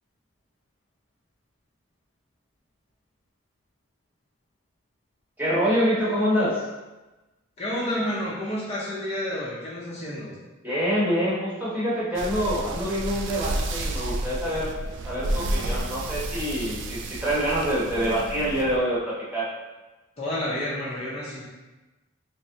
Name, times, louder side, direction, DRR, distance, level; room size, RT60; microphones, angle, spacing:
voice 1, 5.4-6.6 10.6-14.7 15.0-19.5, equal, 10° right, -8 dB, 0.9 m, -26 dB
voice 2, 7.6-10.4 20.2-21.4, left 1 dB, 30° left, -7 dB, 0.5 m, -30 dB
sound 1, 12.1-18.8, right 2 dB, 60° right, 0.3 m, -31 dB
3.4 x 3.1 x 2.7 m, 1.1 s
head